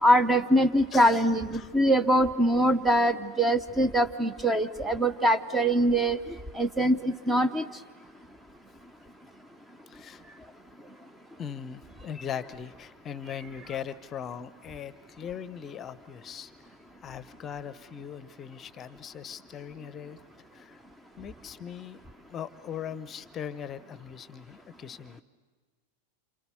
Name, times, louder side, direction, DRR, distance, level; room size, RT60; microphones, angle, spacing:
voice 1, 0.0-6.2 6.5-7.7, right 1 dB, 5° right, 11 dB, 0.8 m, -23 dB
voice 2, 0.9-1.2 1.5-1.7 9.9-10.2 11.4-16.5 17.0-20.2 20.5-20.8 21.2-22.0 22.3-25.2, left 8 dB, 25° left, 16 dB, 0.8 m, -39 dB
28.5 x 28.0 x 6.9 m, 1.4 s
figure-of-eight pair, 90°, 0 cm